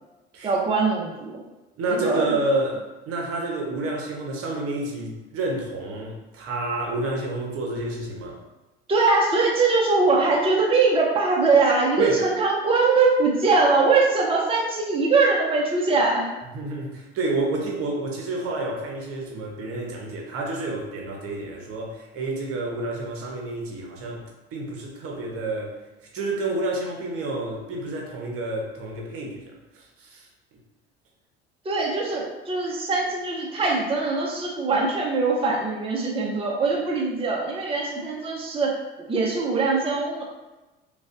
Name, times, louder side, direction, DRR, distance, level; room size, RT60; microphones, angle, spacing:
voice 1, 0.4-1.4 1.9-2.4 8.9-16.3 31.6-40.2, right 3 dB, 20° right, -2 dB, 0.8 m, -22 dB
voice 2, 1.8-8.4 12.0-12.2 16.5-24.2 24.5-25.8 26.1-29.4 29.7-30.3, right 2 dB, 45° right, -1 dB, 0.9 m, -29 dB
4.9 x 2.4 x 2.6 m, 1.1 s
figure-of-eight pair, 60°, 31 cm